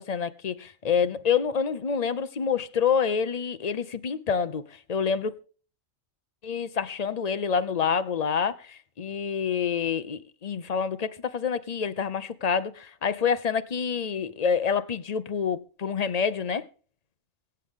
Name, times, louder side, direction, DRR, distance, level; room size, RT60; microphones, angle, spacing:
voice 1, 0.0-4.6 4.9-5.3 6.4-16.7, left 6 dB, 35° left, 0.7 m, -27 dB
23.5 x 8.1 x 3.7 m
omnidirectional pair, 1.3 m